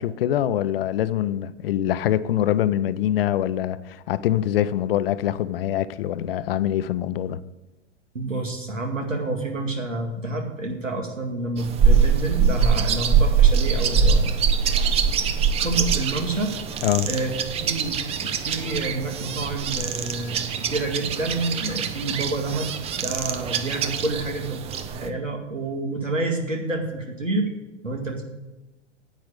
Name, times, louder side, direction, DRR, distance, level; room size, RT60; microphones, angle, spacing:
voice 1, 0.0-7.4 16.8-17.1, left 11 dB, 50° left, 0.6 m, -24 dB
voice 2, 8.1-14.4 15.6-16.5 17.0-27.5 27.8-28.2, right 2 dB, 90° right, 2.3 m, -28 dB
sound 1, 11.6-25.1, right 6 dB, 15° right, 0.6 m, -23 dB
10.5 x 8.0 x 5.0 m
figure-of-eight pair, 105°, 37 cm